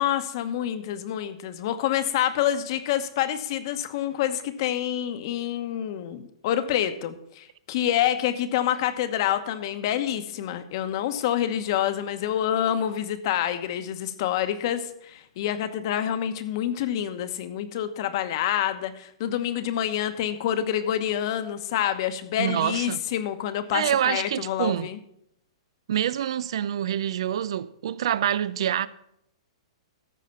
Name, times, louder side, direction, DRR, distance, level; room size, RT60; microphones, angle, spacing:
voice 1, 0.0-25.0, left 11 dB, 50° left, 1.0 m, -27 dB
voice 2, 22.4-23.0 23.7-24.9 25.9-28.9, right 10 dB, 70° right, 0.5 m, -26 dB
14.0 x 4.9 x 5.7 m
hypercardioid pair, 140°, 3 cm